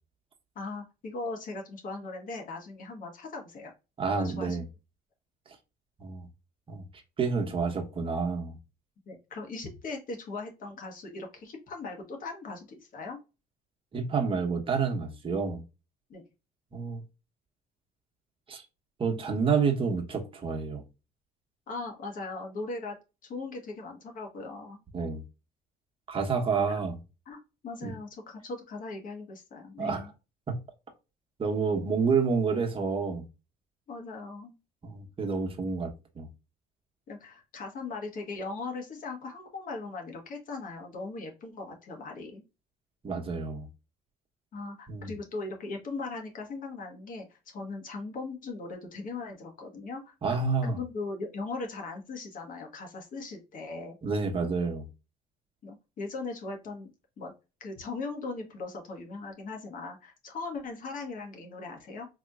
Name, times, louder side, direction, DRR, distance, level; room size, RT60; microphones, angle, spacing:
voice 1, 0.5-3.7 4.1-4.6 9.1-13.2 16.1-16.2 21.7-22.9 23.2-24.8 26.7-26.8 27.3-30.1 33.9-34.5 37.1-42.4 44.5-50.1 50.6-54.0 55.6-56.9 57.2-57.3 57.6-62.1, left 3 dB, 55° left, 1.3 m, -39 dB
voice 2, 4.0-4.6 6.0-6.3 6.7-6.8 7.2-8.6 13.9-15.6 16.7-17.0 18.5-18.6 19.0-20.8 24.9-25.2 26.1-27.0 27.8-27.9 29.8-30.1 30.5-30.6 31.4-33.2 34.8-36.3 43.0-43.7 44.9-45.1 50.2-50.8 54.0-54.9, right 5 dB, 30° right, 1.1 m, -29 dB
4.0 x 2.9 x 2.4 m
cardioid pair, 110°, 17 cm